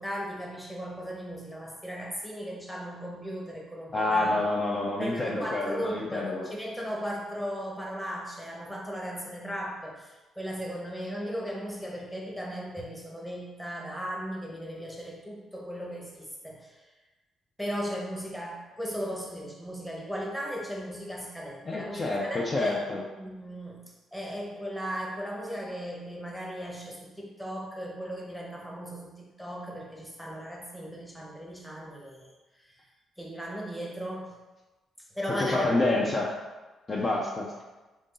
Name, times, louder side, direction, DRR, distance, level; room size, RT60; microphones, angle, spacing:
voice 1, 0.0-4.4 5.0-16.9 17.6-22.8 23.2-32.8 33.2-34.4 35.1-35.8, equal, 5° left, -2 dB, 0.9 m, -37 dB
voice 2, 3.9-6.5 21.7-23.0 35.4-36.3 36.9-37.5, left 2 dB, 30° left, -3 dB, 0.5 m, -28 dB
3.6 x 2.6 x 3.8 m, 1.2 s
cardioid pair, 90°, 0 cm